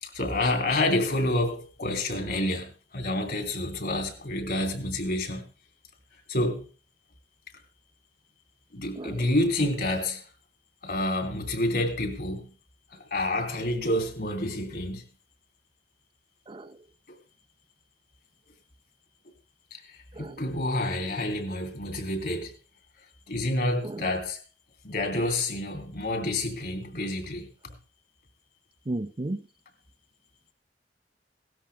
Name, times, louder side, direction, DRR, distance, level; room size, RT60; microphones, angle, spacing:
voice 1, 0.0-5.4 6.3-6.7 8.7-10.3 10.8-12.6 12.9-15.0 19.7-22.5 23.3-24.4 24.8-27.7, left 1 dB, 60° left, 3.1 m, -28 dB
voice 2, 9.0-9.3 16.5-16.8 20.1-20.4 23.8-24.0 28.9-29.4, right 2 dB, 30° right, 0.6 m, -34 dB
18.0 x 13.0 x 3.4 m
head